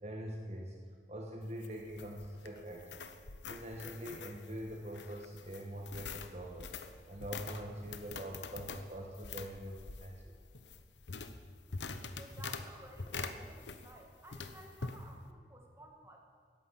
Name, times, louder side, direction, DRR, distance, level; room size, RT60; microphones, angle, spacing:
voice 1, 0.0-0.7 1.1-3.0 3.4-6.7 7.1-10.3, equal, 40° right, -1 dB, 1.4 m, -44 dB
sound 1, 1.4-14.0 14.3-15.0, left 4 dB, 90° left, 1.0 m, -45 dB
voice 2, 12.0-16.2, right 1 dB, 15° right, 1 dB, 2.1 m, -55 dB
12.5 x 11.5 x 8.5 m, 2.1 s
head